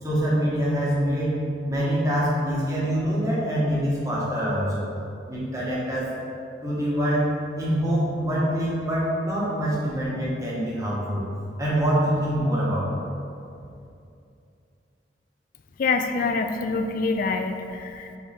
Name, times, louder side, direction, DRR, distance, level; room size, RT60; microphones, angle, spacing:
voice 1, 0.0-1.4 1.7-4.9 5.3-6.1 6.6-7.3 7.5-11.2 11.6-12.9, equal, 20° right, -7 dB, 1.3 m, -25 dB
voice 2, 15.8-18.2, left 4 dB, 50° left, 6 dB, 0.3 m, -26 dB
5.0 x 4.6 x 4.3 m, 2.6 s
head